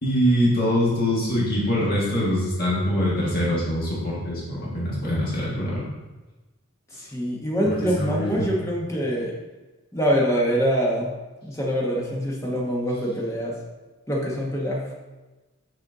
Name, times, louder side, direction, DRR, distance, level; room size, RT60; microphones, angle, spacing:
voice 1, 0.0-5.8 8.0-8.5, equal, 45° left, -6 dB, 1.6 m, -23 dB
voice 2, 6.9-9.3 9.9-11.1 11.4-13.6 14.1-14.9, equal, 15° left, -3 dB, 1.0 m, -24 dB
6.5 x 4.3 x 3.8 m, 1.2 s
head